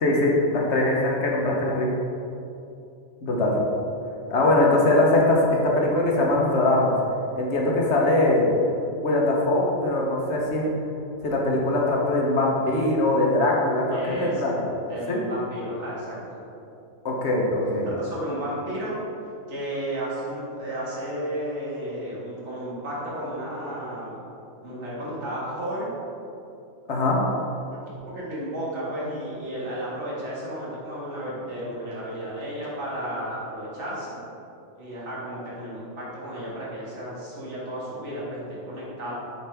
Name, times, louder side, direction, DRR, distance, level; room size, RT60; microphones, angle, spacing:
voice 1, 0.0-1.9 3.2-3.6 4.3-6.9 7.4-8.5 9.0-10.7 11.2-14.5 15.1-15.2 17.0-17.9 26.9-27.2, left 2 dB, 55° left, -2 dB, 1.2 m, -22 dB
voice 2, 13.9-14.5 14.9-16.4 18.0-19.0 19.5-24.2 24.6-25.9 27.9-34.2 34.8-39.1, right 1 dB, 55° right, -7 dB, 1.9 m, -33 dB
7.0 x 5.0 x 3.4 m, 2.7 s
omnidirectional pair, 1.5 m